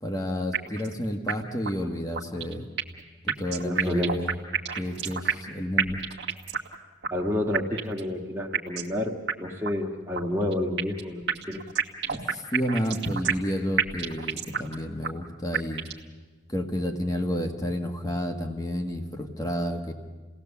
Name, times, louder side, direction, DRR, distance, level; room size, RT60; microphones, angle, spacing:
voice 1, 0.0-2.7 3.2-4.3 4.8-6.0 12.1-15.9 16.5-19.9, equal, 20° left, 4 dB, 1.5 m, -30 dB
sound 1, 0.5-0.9 1.3-1.4 1.6-1.7 2.1-3.0 3.3-5.5 5.8-6.7 7.0-7.1 7.5-8.0 8.5-8.9 9.3-9.4 9.6-9.7 10.1-11.0 11.3-13.5 13.8-14.7 15.0-15.1 15.5-16.0, right 7 dB, 60° right, 1.4 m, -28 dB
voice 2, 3.6-4.2 7.1-11.6, left 1 dB, 10° right, -1 dB, 1.6 m, -29 dB
28.5 x 18.0 x 7.1 m, 1.3 s
head